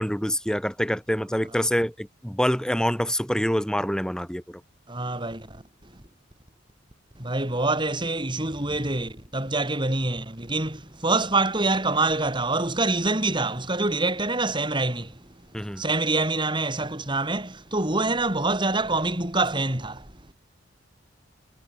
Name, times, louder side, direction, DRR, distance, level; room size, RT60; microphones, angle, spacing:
voice 1, 0.0-4.6 15.5-15.8, equal, 5° left, 4.9 m, -26 dB
voice 2, 4.9-5.6 7.2-15.3 15.8-20.1, right 2 dB, 25° right, 4.0 m, -26 dB
head